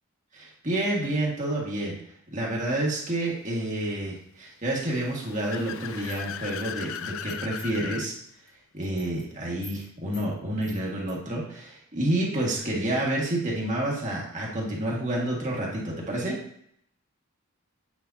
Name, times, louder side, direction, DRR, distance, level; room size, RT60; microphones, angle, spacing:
voice 1, 0.3-2.0 2.3-8.1 8.7-16.4, right 1 dB, 35° right, -3 dB, 1.9 m, -29 dB
Car / Accelerating revving vroom, 4.8-8.1, left 9 dB, 60° left, 0.3 m, -37 dB
sound 1, 6.0-7.9 8.2-8.5 8.8-9.2 9.6-9.9 10.1-10.3 10.6-11.1, left 1 dB, 20° left, 1.3 m, -47 dB
8.5 x 5.6 x 2.8 m, 0.71 s
head